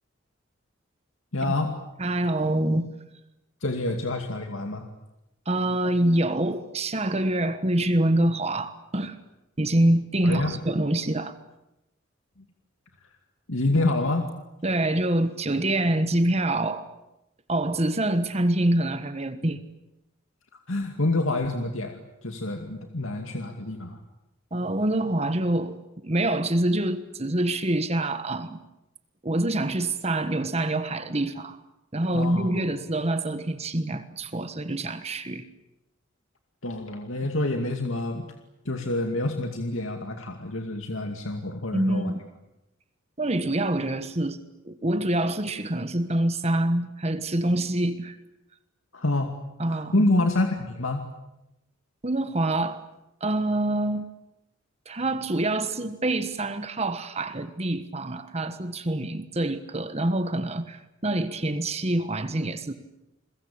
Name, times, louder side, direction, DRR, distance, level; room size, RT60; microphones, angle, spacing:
voice 1, 1.3-1.7 3.6-4.8 10.2-10.6 13.5-14.3 20.7-24.0 32.1-32.7 36.6-38.3 38.6-42.1 48.9-49.3 49.7-51.0, left 2 dB, 80° left, 4 dB, 2.4 m, -27 dB
voice 2, 2.0-2.9 5.4-9.2 9.6-11.3 14.6-16.9 17.5-19.6 24.5-25.8 26.0-28.6 29.2-31.6 31.9-35.4 41.7-42.2 43.2-44.4 44.6-48.2 49.6-50.1 52.0-52.8 53.2-54.1 54.8-62.7, right 1 dB, 30° right, 11 dB, 1.3 m, -26 dB
29.5 x 22.5 x 8.8 m, 0.92 s
head